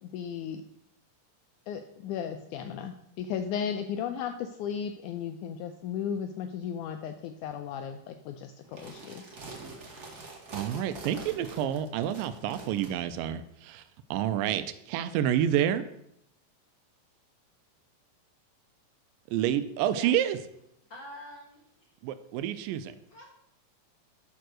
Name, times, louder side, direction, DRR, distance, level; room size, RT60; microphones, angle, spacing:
voice 1, 0.0-0.6 1.7-9.3, left 8 dB, 90° left, 6 dB, 1.8 m, -35 dB
sound 1, 8.6-12.9, right 3 dB, 40° right, 1.4 m, -45 dB
voice 2, 10.5-13.8 14.1-15.8 19.3-20.4 22.0-22.9, right 10 dB, 80° right, 12 dB, 2.2 m, -28 dB
voice 3, 20.8-21.6 23.1-23.3, left 1 dB, 55° left, -2 dB, 1.3 m, -44 dB
10.5 x 4.6 x 6.2 m, 0.75 s
omnidirectional pair, 4.1 m